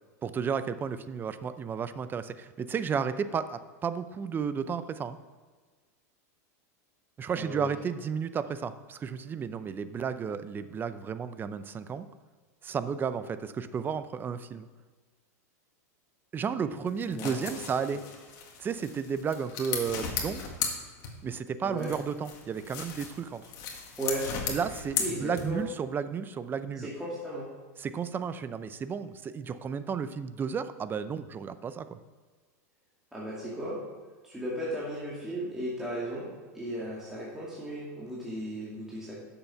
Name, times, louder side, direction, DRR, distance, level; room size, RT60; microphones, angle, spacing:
voice 1, 0.2-5.2 7.2-12.1 12.6-14.7 16.3-18.0 18.6-20.4 21.2-23.4 24.5-26.9 27.8-32.0, right 6 dB, 25° right, 13 dB, 0.5 m, -33 dB
voice 2, 7.3-7.7 17.1-17.6 17.9-18.0 21.6-21.9 24.0-24.3 25.0-25.6 26.8-27.5 33.1-33.8 34.2-36.3 36.5-39.2, right 1 dB, 5° right, -7 dB, 2.2 m, -36 dB
sound 1, 16.9-21.4 21.8-25.8, left 6 dB, 50° left, 1.8 m, -36 dB
7.8 x 6.9 x 5.6 m, 1.4 s
hypercardioid pair, 120°, 9 cm